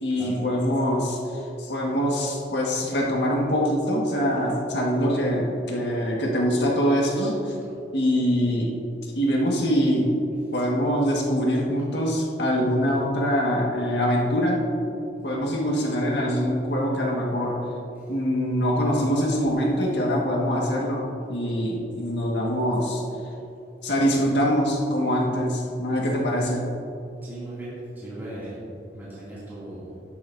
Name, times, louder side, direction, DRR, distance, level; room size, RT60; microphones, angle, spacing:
voice 1, 0.0-7.6 7.9-8.8 9.2-10.1 10.5-14.6 15.2-17.6 18.1-23.0 23.8-26.7, equal, 70° left, -2 dB, 1.8 m, -24 dB
voice 2, 27.2-28.6 28.9-29.9, right 1 dB, 10° right, -11 dB, 2.6 m, -38 dB
12.5 x 11.0 x 2.7 m, 2.7 s
head